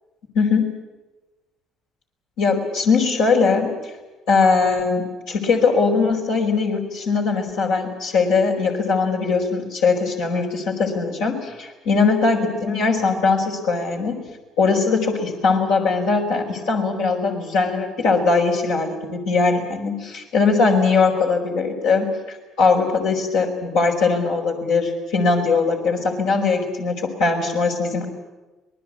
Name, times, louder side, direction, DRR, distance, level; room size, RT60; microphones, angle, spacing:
voice 1, 0.3-0.7 2.4-3.7 4.3-14.2 14.6-28.1, left 4 dB, 80° left, -1 dB, 4.9 m, -20 dB
26.0 x 20.0 x 8.5 m, 1.1 s
supercardioid pair, 65°, 0 cm